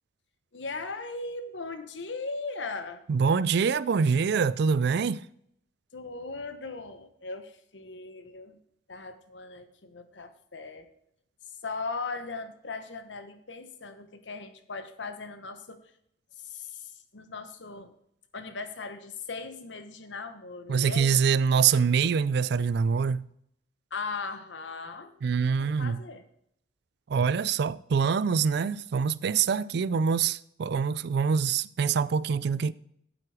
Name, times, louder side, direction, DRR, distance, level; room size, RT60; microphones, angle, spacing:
voice 1, 0.5-3.0 5.9-8.6 8.9-10.9 11.6-15.8 16.4-17.9 18.3-21.2 23.9-26.2, left 3 dB, 90° left, 1.1 m, -38 dB
voice 2, 3.1-5.2 20.7-23.3 25.2-26.0 27.1-32.7, right 6 dB, 65° right, 0.4 m, -25 dB
9.4 x 7.8 x 4.9 m
head